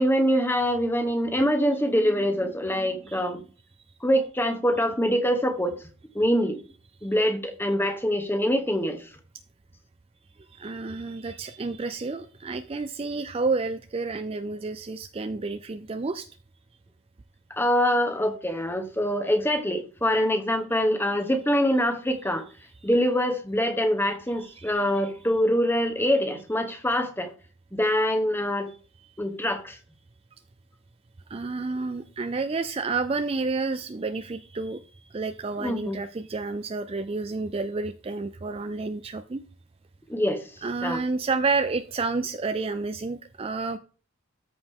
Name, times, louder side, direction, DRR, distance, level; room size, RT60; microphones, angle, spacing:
voice 1, 0.0-3.4 4.0-5.8 6.1-6.6 7.0-9.1 17.5-22.4 22.8-27.3 27.7-28.7 29.2-29.8 35.6-36.0 40.1-40.4 40.8-41.0, equal, 10° left, 1.1 m, -24 dB
voice 2, 10.4-16.3 24.4-24.8 31.3-39.4 40.6-43.8, right 3 dB, 25° right, 0.4 m, -30 dB
13.5 x 5.0 x 3.6 m
head